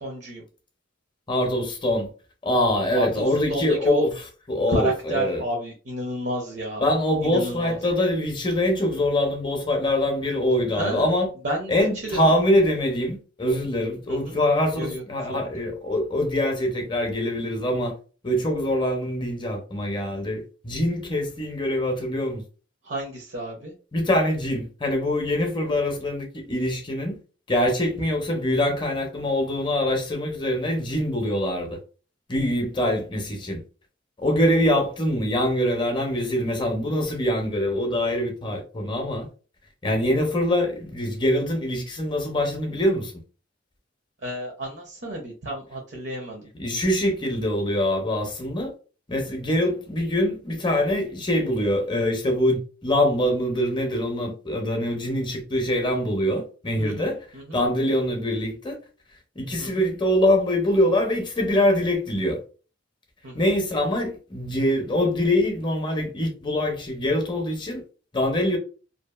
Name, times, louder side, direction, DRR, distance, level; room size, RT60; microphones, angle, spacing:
voice 1, 0.0-0.4 2.9-4.1 4.7-6.9 7.2-7.8 10.7-11.1 11.4-11.7 12.0-12.3 14.1-14.4 14.8-15.0 15.3-15.5 22.8-23.7 44.2-46.5 56.8-57.6 59.6-59.8 63.2-63.5, right 1 dB, 60° right, 0.7 m, -30 dB
voice 2, 1.3-2.1 2.4-4.0 4.5-5.4 6.8-11.3 11.7-17.9 18.2-22.4 23.9-27.2 27.5-31.8 32.3-33.6 34.2-39.3 39.8-43.1 46.6-48.7 49.1-57.3 57.5-58.8 59.4-62.4 63.3-67.8 68.1-68.6, left 1 dB, 25° left, 0.6 m, -24 dB
2.7 x 2.4 x 2.3 m
head